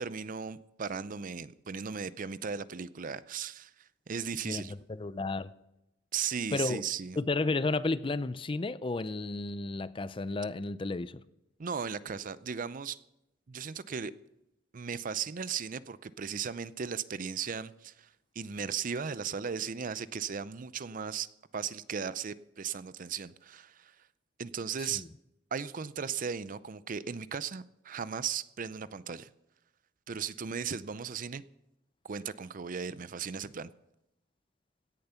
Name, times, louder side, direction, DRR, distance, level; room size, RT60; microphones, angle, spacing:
voice 1, 0.0-4.7 6.1-7.2 11.6-13.0 13.5-14.1 14.7-18.1 18.4-21.3 21.5-23.9 24.4-25.0 25.5-29.3 30.1-31.4 32.0-33.7, right 6 dB, 45° right, 0.5 m, -36 dB
voice 2, 4.5-5.5 6.5-6.8 7.2-11.2 24.8-25.1, left 3 dB, 25° left, 0.5 m, -32 dB
17.0 x 10.5 x 5.7 m
head